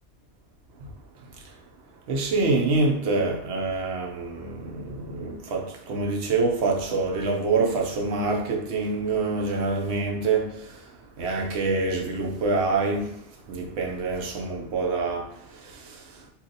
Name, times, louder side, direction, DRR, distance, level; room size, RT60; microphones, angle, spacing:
voice 1, 2.1-10.8 11.2-13.2 13.5-16.2, right 3 dB, 70° right, 0.9 m, -26 dB
2.8 x 2.3 x 3.9 m
omnidirectional pair, 1.2 m